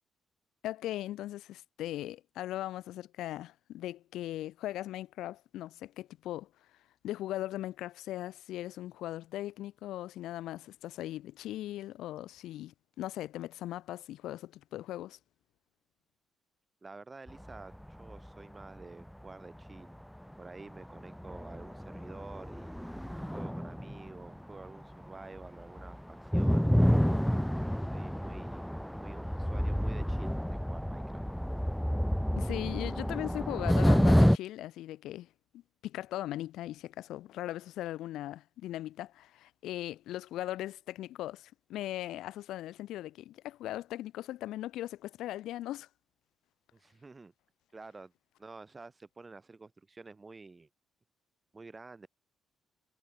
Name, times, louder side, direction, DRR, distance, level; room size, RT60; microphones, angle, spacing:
voice 1, 0.6-6.5 7.0-15.2 32.4-35.3 35.8-45.9, left 14 dB, 85° left, 2.4 m, -39 dB
voice 2, 16.8-20.0 20.4-22.7 23.3-26.7 27.9-28.7 29.0-31.2 46.7-47.3 47.7-48.1 48.4-50.7 51.5-52.1, right 3 dB, 25° right, 4.7 m, -50 dB
sound 1, 17.3-18.3 18.6-18.8 19.6-19.7 20.3-20.4 20.7-25.1 25.3-34.4, equal, ahead, 1.5 m, -29 dB
cardioid pair, 90°, 0 cm